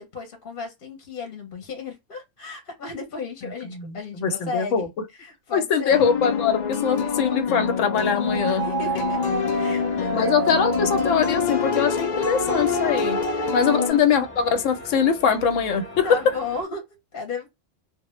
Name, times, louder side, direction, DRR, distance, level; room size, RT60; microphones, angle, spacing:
voice 1, 0.0-4.9 5.2-6.0 6.8-7.4 8.6-10.6 13.3-13.9 16.0-17.5, left 4 dB, 55° left, 0.8 m, -35 dB
voice 2, 3.7-4.9 5.5-8.6 10.1-13.2 13.5-16.2, left 7 dB, 90° left, 1.0 m, -22 dB
sound 1, 5.9-14.0, left 6 dB, 70° left, 0.4 m, -26 dB
sound 2, 8.3-13.9, right 8 dB, 50° right, 0.6 m, -31 dB
sound 3, 8.8-16.7, left 1 dB, 10° left, 0.8 m, -41 dB
2.1 x 2.1 x 3.0 m
omnidirectional pair, 1.3 m